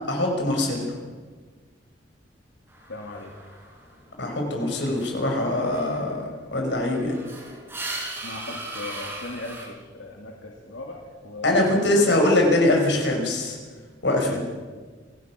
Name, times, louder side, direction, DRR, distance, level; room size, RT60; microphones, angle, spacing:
voice 1, 0.1-0.9 4.2-6.2 6.5-7.1 11.4-13.6 14.0-14.4, left 1 dB, 65° left, 1 dB, 5.7 m, -22 dB
sound 1, 2.7-4.1 4.4-9.7, right 2 dB, 15° right, 5.0 m, -39 dB
voice 2, 2.9-3.3 8.2-12.2, left 2 dB, 85° left, -1 dB, 2.8 m, -38 dB
28.5 x 16.5 x 6.1 m, 1.5 s
head